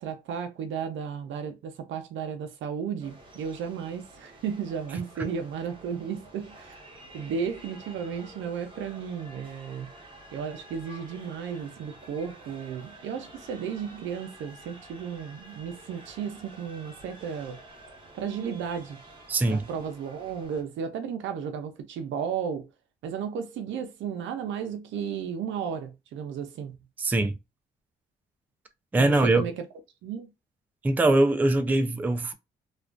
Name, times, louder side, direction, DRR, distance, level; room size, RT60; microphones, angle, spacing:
voice 1, 0.0-6.8 7.1-9.9 10.3-17.6 18.1-19.0 19.5-22.7 23.0-26.8 29.0-29.5 30.0-30.3, right 7 dB, 75° right, 0.5 m, -34 dB
sound 1, 3.0-20.6, right 1 dB, 25° right, 0.9 m, -50 dB
voice 2, 19.3-19.6 27.0-27.4 28.9-29.5 30.8-32.3, right 2 dB, 10° right, 0.3 m, -22 dB
2.4 x 2.2 x 2.4 m
cardioid pair, 90°, 20 cm